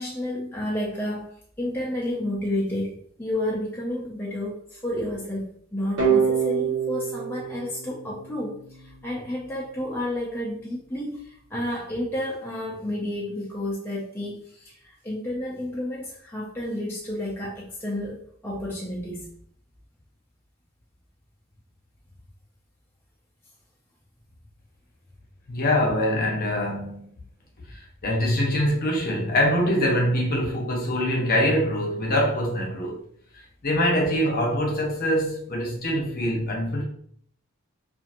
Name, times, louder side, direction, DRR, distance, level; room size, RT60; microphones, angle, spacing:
voice 1, 0.0-19.3, left 1 dB, 10° left, 0.4 m, -31 dB
sound 1, 6.0-8.8, right 6 dB, 60° right, 0.9 m, -25 dB
voice 2, 25.5-27.0 27.7-33.0 33.6-36.8, equal, 45° left, 0.8 m, -24 dB
2.8 x 2.5 x 2.5 m
head